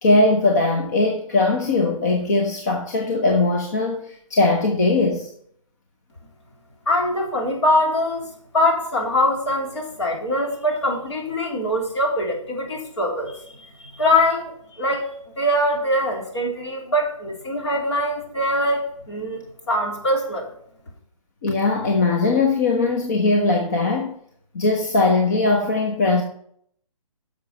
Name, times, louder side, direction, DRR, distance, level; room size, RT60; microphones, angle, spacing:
voice 1, 0.0-5.3 21.4-24.1 24.5-26.2, left 3 dB, 30° left, 0.9 m, -20 dB
voice 2, 6.9-15.1 15.4-19.4 19.7-20.5, left 1 dB, 50° left, 3.5 m, -23 dB
11.0 x 6.6 x 5.5 m
hypercardioid pair, 175°, 18 cm